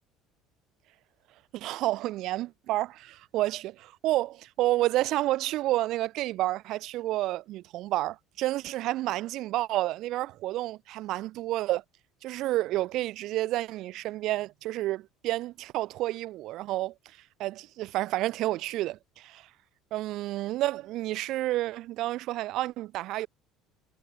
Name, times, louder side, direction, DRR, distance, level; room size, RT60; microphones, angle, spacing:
voice 1, 1.5-11.8 12.2-16.9 17.4-19.5 19.9-23.3, right 16 dB, 55° right, 1.1 m, -30 dB
cardioid pair, 160°, 0 cm